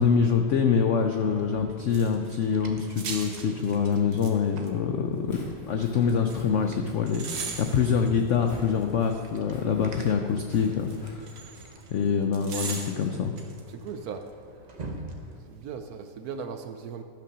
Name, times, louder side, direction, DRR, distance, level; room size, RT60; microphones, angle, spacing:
voice 1, 0.0-11.5 11.9-13.3, left 6 dB, 85° left, 5 dB, 0.6 m, -25 dB
sound 1, 1.2-15.4, right 2 dB, 35° right, 0.6 m, -48 dB
sound 2, 1.9-2.4 2.8-4.3 4.6-4.7 6.1-6.4 7.1-9.4 10.5-11.9 12.3-13.6 13.9-14.0, right 5 dB, 85° right, 1.8 m, -38 dB
Walk footsteps, 5.1-11.9, equal, 65° left, 3.4 m, -49 dB
voice 2, 13.7-14.2 15.5-17.0, right 6 dB, 70° right, 8 dB, 0.9 m, -37 dB
12.5 x 5.8 x 6.1 m, 2.3 s
omnidirectional pair, 1.9 m